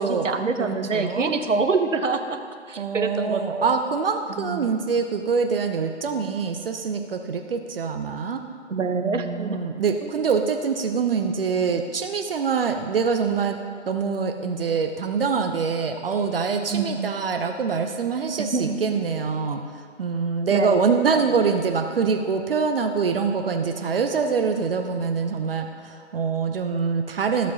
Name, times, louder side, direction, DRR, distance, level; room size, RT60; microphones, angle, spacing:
voice 1, 0.0-2.4 2.7-3.7 4.3-4.7 8.7-9.6 10.0-10.1 16.7-17.1 18.5-18.8 20.5-21.3, right 4 dB, 90° right, 6 dB, 1.0 m, -26 dB
voice 2, 0.6-1.3 2.8-8.4 8.9-13.6 13.9-19.6 20.0-27.5, right 5 dB, 50° right, 5 dB, 0.6 m, -24 dB
14.5 x 7.3 x 2.8 m, 2.1 s
figure-of-eight pair, 145°, 36 cm